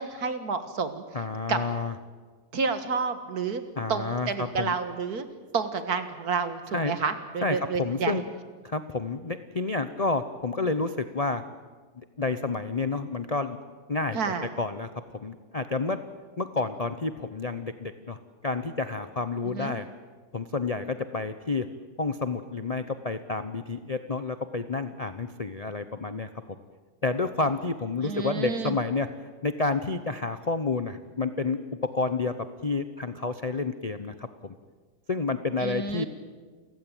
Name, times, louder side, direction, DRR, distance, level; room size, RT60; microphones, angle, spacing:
voice 1, 0.0-1.0 1.5-1.6 2.5-3.6 3.9-5.3 5.5-8.2 14.1-14.5 19.4-19.7 28.0-28.8 35.6-36.1, right 5 dB, 55° right, 9 dB, 2.0 m, -29 dB
voice 2, 1.1-1.9 3.8-4.7 6.7-6.9 7.4-8.2 8.6-11.4 11.9-13.6 13.9-16.0 16.4-19.9 20.3-21.7 22.0-26.3 27.0-29.1 29.4-32.4 32.6-34.5 35.1-36.0, left 3 dB, 35° left, 10 dB, 0.5 m, -30 dB
29.5 x 15.5 x 9.1 m, 1.5 s
omnidirectional pair, 2.0 m